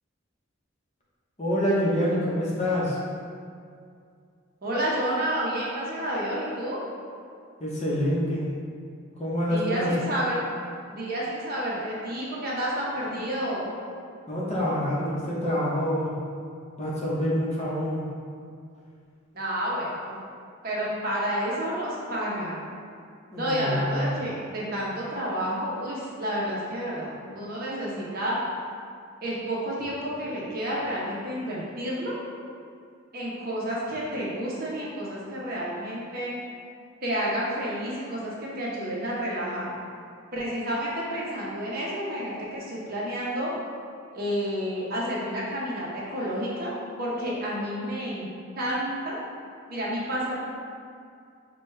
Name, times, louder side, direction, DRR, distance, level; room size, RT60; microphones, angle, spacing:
voice 1, 1.4-3.0 7.6-8.5 9.2-9.9 14.3-16.2 16.8-18.1 23.3-24.0, equal, 30° left, -6 dB, 0.8 m, -26 dB
voice 2, 4.6-6.8 9.4-10.4 10.9-13.7 19.3-20.2 20.6-22.7 23.4-28.4 29.2-32.1 33.1-36.3 37.0-39.7 40.3-43.5 44.1-48.3 48.6-49.2 49.7-50.4, equal, 45° right, -6 dB, 0.8 m, -30 dB
6.0 x 2.3 x 3.2 m, 2.3 s
head